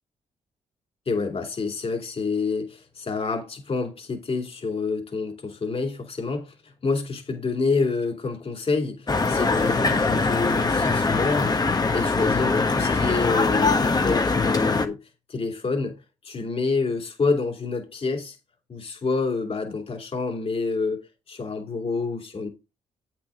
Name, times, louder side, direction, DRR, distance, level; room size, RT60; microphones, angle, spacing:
voice 1, 1.1-11.6 11.9-15.0 15.3-16.0 16.2-18.4 18.7-21.0 21.3-22.5, left 4 dB, 45° left, 2.7 m, -28 dB
sound 1, 9.1-14.9, left 3 dB, 30° left, 1.3 m, -22 dB
8.4 x 6.1 x 3.7 m
supercardioid pair, 55°, 13 cm